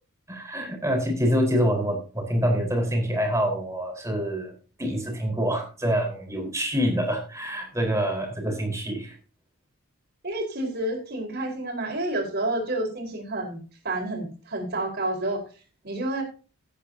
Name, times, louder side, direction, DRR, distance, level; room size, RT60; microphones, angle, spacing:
voice 1, 0.3-4.5 4.8-9.1, equal, 15° right, 1 dB, 4.5 m, -26 dB
voice 2, 10.2-13.6 13.8-15.4 15.8-16.2, right 1 dB, 50° right, 1 dB, 4.7 m, -29 dB
16.5 x 9.8 x 2.8 m, 0.35 s
head